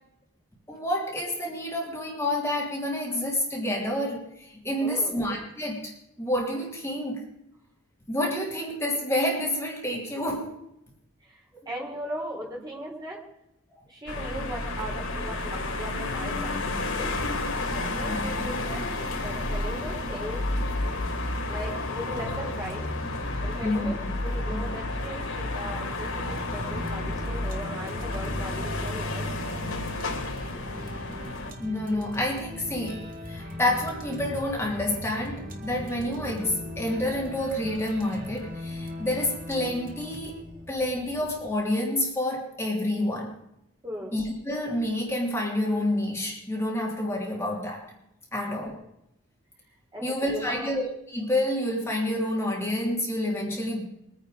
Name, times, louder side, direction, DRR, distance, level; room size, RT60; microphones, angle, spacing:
voice 1, 0.7-7.2 8.1-10.6 11.5-11.7 18.1-18.5 23.6-24.0 24.5-24.8 31.5-43.4 44.1-47.9 48.3-48.7 50.0-53.8, left 1 dB, 10° left, -3 dB, 3.1 m, -29 dB
voice 2, 4.8-5.2 11.2-13.2 13.9-17.1 17.7-20.4 21.5-22.8 23.4-29.7 30.7-30.9 33.4-33.6 43.8-44.1 48.3-48.6 49.9-50.8, equal, 20° right, -2 dB, 3.7 m, -39 dB
sound 1, 14.1-31.5, left 2 dB, 80° left, 3.1 m, -31 dB
sound 2, 26.2-41.5, left 1 dB, 40° right, 1.9 m, -39 dB
23.0 x 9.6 x 5.0 m, 0.81 s
head